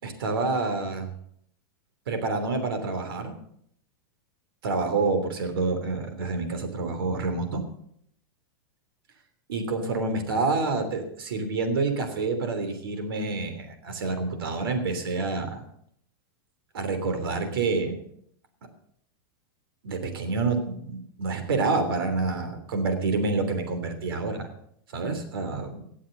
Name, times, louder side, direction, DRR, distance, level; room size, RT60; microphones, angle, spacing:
voice 1, 0.0-1.1 2.1-3.4 4.6-7.6 9.5-15.6 16.7-18.0 19.8-24.5 24.9-25.9, right 3 dB, 85° right, 7 dB, 3.2 m, -28 dB
18.5 x 7.4 x 6.7 m, 0.69 s
supercardioid pair, 145°, 12 cm